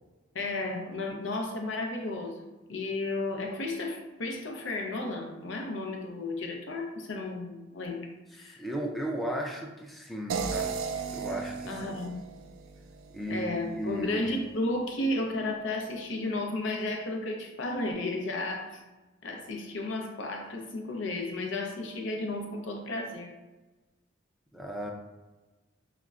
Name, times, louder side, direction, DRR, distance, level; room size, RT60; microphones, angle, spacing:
voice 1, 0.3-8.7 11.6-12.2 13.3-18.8 19.2-23.3, left 2 dB, 65° left, 2 dB, 0.6 m, -33 dB
voice 2, 8.4-10.7 11.1-12.0 13.1-14.3 24.5-24.9, equal, ahead, -1 dB, 0.4 m, -35 dB
sound 1, 10.3-13.4, right 5 dB, 85° right, 0.4 m, -35 dB
5.6 x 2.1 x 2.4 m, 1.2 s
head